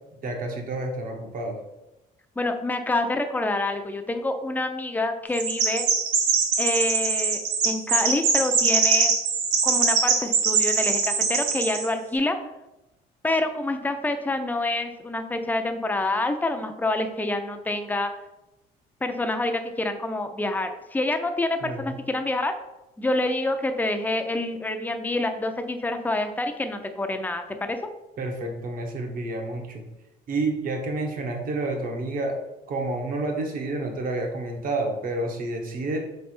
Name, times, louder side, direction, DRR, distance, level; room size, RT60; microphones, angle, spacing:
voice 1, 0.2-1.6 21.6-22.0 28.2-29.8 30.3-32.4 32.7-36.0, right 2 dB, 55° right, 3 dB, 1.0 m, -29 dB
voice 2, 2.4-5.9 6.6-9.1 9.6-12.4 13.2-18.1 19.0-22.5 23.0-27.8, left 2 dB, 10° left, 6 dB, 0.5 m, -27 dB
Chirp tweet, 5.3-11.9, right 5 dB, 85° right, 0.9 m, -22 dB
3.7 x 3.3 x 4.3 m, 0.95 s
cardioid pair, 110°, 17 cm